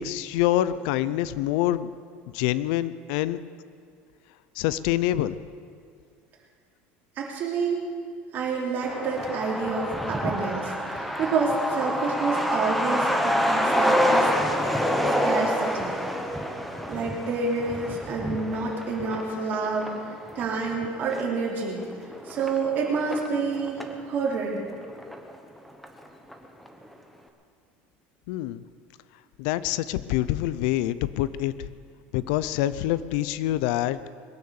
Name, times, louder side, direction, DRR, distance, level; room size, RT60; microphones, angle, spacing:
voice 1, 0.0-1.9 2.3-3.4 4.6-5.4 28.3-28.6 29.4-31.7 32.1-34.1, left 13 dB, 75° left, 16 dB, 0.6 m, -26 dB
voice 2, 7.2-7.9 8.3-14.3 15.2-15.9 16.9-21.8 22.3-24.6, right 4 dB, 40° right, -2 dB, 3.3 m, -28 dB
Truck, 8.8-24.0 24.3-24.4 24.7-25.6 25.8-25.9 26.3-26.7, equal, ahead, 1.0 m, -27 dB
21.5 x 9.5 x 7.0 m, 2.2 s
cardioid pair, 165°, 5 cm